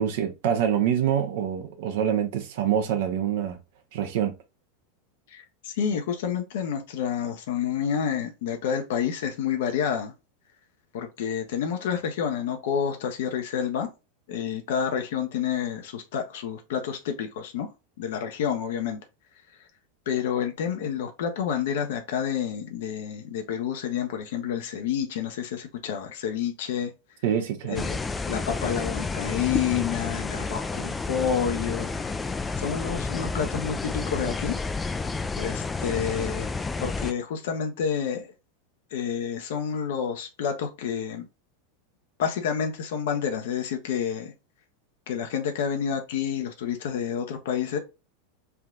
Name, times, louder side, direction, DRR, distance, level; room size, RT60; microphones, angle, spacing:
voice 1, 0.0-3.6 3.9-4.3 27.2-27.9, right 9 dB, 60° right, 0.9 m, -25 dB
voice 2, 5.3-10.1 10.9-13.9 14.3-17.7 18.0-19.0 20.1-26.9 27.7-28.0 28.3-31.9 32.6-34.6 35.4-36.5 36.8-38.3 38.9-41.3 42.2-44.3 45.1-47.8, left 8 dB, 65° left, 0.6 m, -29 dB
sound 1, 27.8-37.1, left 4 dB, 15° left, 0.3 m, -30 dB
3.3 x 2.8 x 2.3 m
figure-of-eight pair, 90°, 0 cm